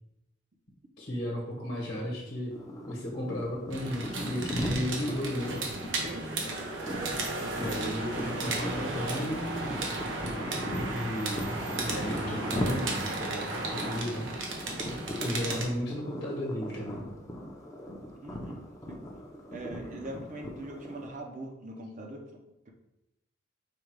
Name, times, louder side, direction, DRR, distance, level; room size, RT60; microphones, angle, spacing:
voice 1, 1.0-2.6 2.9-5.6 7.5-9.8 10.9-14.3 15.2-17.0, left 1 dB, 55° left, -3 dB, 1.1 m, -34 dB
sound 1, 2.5-21.1, equal, 15° left, 0.6 m, -39 dB
sound 2, 3.7-15.6, right 2 dB, 80° right, 0.9 m, -34 dB
voice 2, 6.0-6.5 7.6-7.7 18.2-19.0 19.5-22.7, right 1 dB, 40° right, 1 dB, 0.6 m, -42 dB
5.0 x 2.3 x 4.6 m, 0.91 s
head